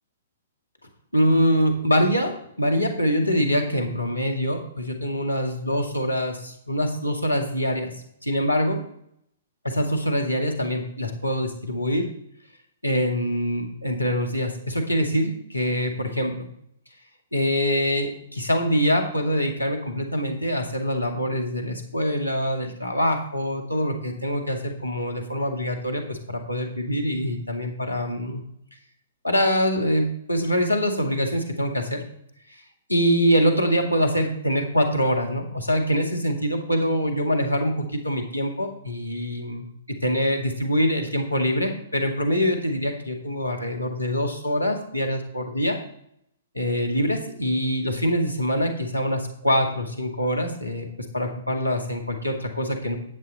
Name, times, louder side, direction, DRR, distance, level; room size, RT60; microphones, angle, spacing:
voice 1, 1.1-7.9 8.2-8.8 9.6-12.1 12.8-16.5 17.3-28.4 29.2-32.0 32.9-39.7 40.0-45.8 46.6-53.0, equal, 90° left, 3 dB, 1.8 m, -24 dB
10.5 x 7.8 x 4.0 m, 0.72 s
figure-of-eight pair, 115°, 0 cm